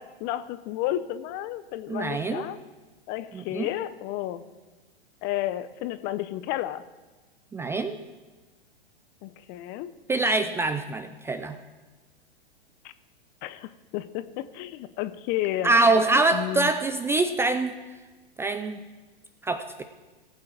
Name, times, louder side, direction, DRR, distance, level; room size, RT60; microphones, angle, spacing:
voice 1, 0.0-2.6 3.1-4.4 5.2-6.8 9.2-9.9 13.4-15.7 16.3-16.7, left 14 dB, 30° left, 14 dB, 0.7 m, -32 dB
voice 2, 1.9-2.5 3.3-3.7 7.5-8.0 10.1-11.6 15.6-17.7 18.4-18.8 19.4-19.8, right 2 dB, 10° right, 9 dB, 0.4 m, -24 dB
18.0 x 8.5 x 4.8 m, 1.3 s
figure-of-eight pair, 105°, 30 cm